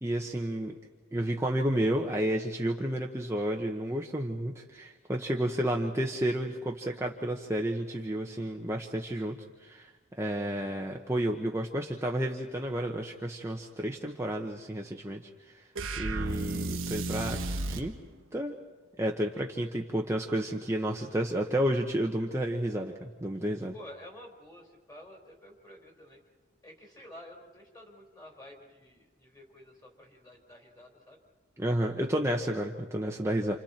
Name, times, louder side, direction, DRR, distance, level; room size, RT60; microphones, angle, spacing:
voice 1, 0.0-0.7 1.1-9.4 9.6-9.9 10.2-15.6 16.0-17.4 17.7-17.9 18.3-18.5 19.0-23.7 31.6-33.6, right 1 dB, 15° right, 0 dB, 1.1 m, -31 dB
sound 1, 15.8-17.9, right 2 dB, 80° right, 1.3 m, -33 dB
voice 2, 23.7-26.2 26.6-31.2, left 1 dB, 20° left, 0 dB, 4.4 m, -50 dB
29.0 x 28.5 x 4.5 m, 1.3 s
head